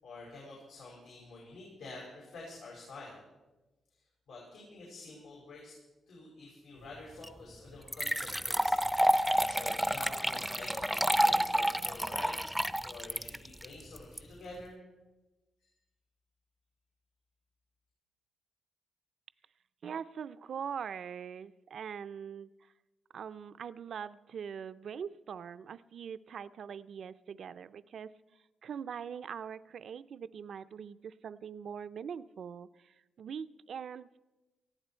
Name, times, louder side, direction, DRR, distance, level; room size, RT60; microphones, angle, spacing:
voice 1, 0.0-3.2 4.3-5.8 6.1-8.7 9.4-14.8, left 2 dB, 85° left, -4 dB, 5.4 m, -48 dB
sound 1, 7.2-7.3 7.9-14.2, equal, 5° right, 0.5 m, -29 dB
voice 2, 19.8-22.5 23.1-28.1 28.6-34.1, right 7 dB, 65° right, 14 dB, 0.5 m, -42 dB
18.5 x 15.0 x 4.4 m, 1.1 s
cardioid pair, 110°, 0 cm